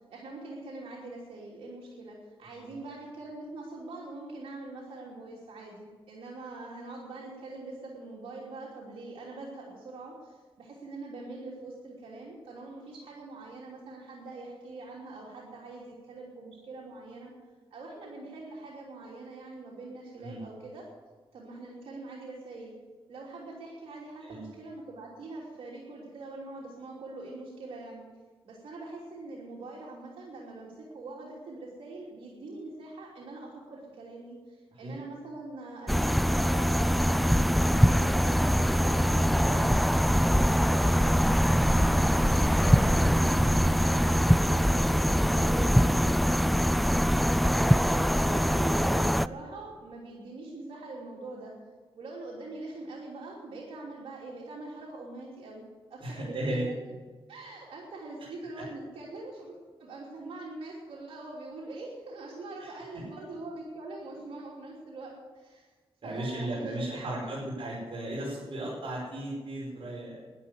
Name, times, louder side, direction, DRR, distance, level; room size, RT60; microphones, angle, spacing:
voice 1, 0.1-17.3 17.7-20.8 21.3-22.8 23.1-28.0 28.4-41.2 41.6-46.9 47.4-51.5 51.9-55.6 55.9-56.7 57.3-65.7 66.0-67.3, right 2 dB, 85° right, -4 dB, 3.1 m, -43 dB
sound 1, 35.9-49.3, equal, ahead, 0.4 m, -23 dB
voice 2, 39.4-39.7 47.9-48.0 56.0-56.7 62.6-62.7 66.0-70.2, right 1 dB, 65° right, -6 dB, 5.5 m, -35 dB
11.5 x 10.5 x 9.6 m, 1.4 s
cardioid pair, 70°, 10 cm